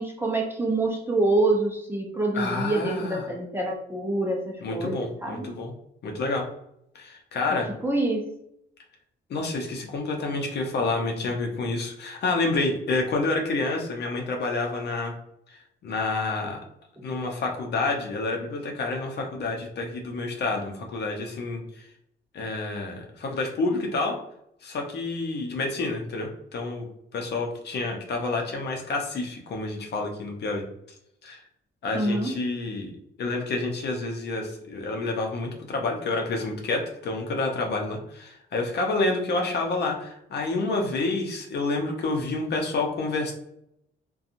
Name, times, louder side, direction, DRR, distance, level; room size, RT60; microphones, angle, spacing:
voice 1, 0.0-5.0 5.2-5.5 7.5-7.6 7.8-8.2 17.0-17.1 31.9-32.3, right 2 dB, 10° right, -1 dB, 0.5 m, -26 dB
voice 2, 2.3-3.3 4.6-5.7 6.0-6.5 6.9-7.7 9.3-15.1 15.5-16.6 17.0-21.8 22.3-24.1 24.6-26.9 27.1-30.6 31.2-31.4 31.8-32.9 33.2-43.3, left 3 dB, 55° left, 1 dB, 0.7 m, -28 dB
2.7 x 2.3 x 2.5 m, 0.75 s
cardioid pair, 90°, 20 cm